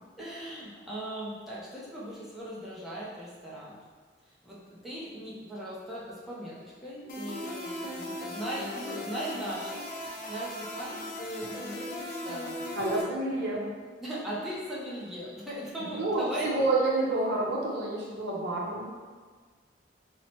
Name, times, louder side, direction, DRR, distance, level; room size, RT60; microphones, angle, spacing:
voice 1, 0.2-3.8 4.4-4.6 4.8-12.6 13.5-13.7 14.0-16.8, right 1 dB, ahead, -8 dB, 0.6 m, -39 dB
sound 1, 7.1-13.0, left 1 dB, 50° left, 0.5 m, -38 dB
voice 2, 12.7-13.6 15.8-18.9, right 2 dB, 60° right, -3 dB, 0.7 m, -29 dB
4.3 x 2.1 x 3.0 m, 1.5 s
head